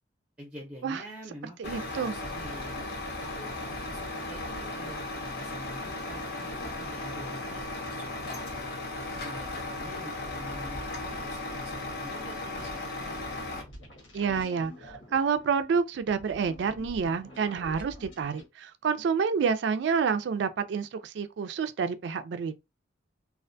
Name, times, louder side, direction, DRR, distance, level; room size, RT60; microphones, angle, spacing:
voice 1, 0.4-2.9 3.2-8.4 9.2-13.2, equal, 5° right, 0.5 m, -47 dB
Truck, 1.6-13.6, left 2 dB, 55° left, 0.6 m, -36 dB
voice 2, 1.6-2.1 14.1-22.6, right 6 dB, 65° right, 0.3 m, -28 dB
sound 1, 13.5-18.5, equal, 90° left, 1.1 m, -47 dB
2.4 x 2.2 x 2.5 m
head